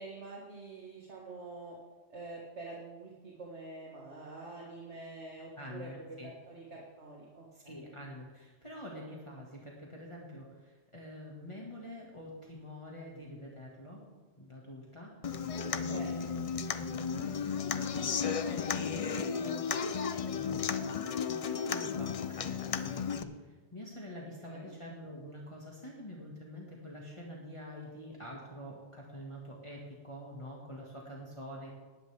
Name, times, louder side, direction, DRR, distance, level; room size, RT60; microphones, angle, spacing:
voice 1, 0.0-1.8 2.1-5.9 6.5-7.7 15.5-16.1 24.5-24.7, right 3 dB, 65° right, -3 dB, 2.1 m, -46 dB
voice 2, 5.6-6.3 7.5-14.0 14.4-16.3 16.7-21.0 21.3-31.7, equal, 25° left, -4 dB, 1.8 m, -46 dB
Human voice / Acoustic guitar, 15.2-23.2, left 6 dB, 50° left, 0.4 m, -34 dB
19.0 x 10.5 x 3.5 m, 1.3 s
omnidirectional pair, 1.2 m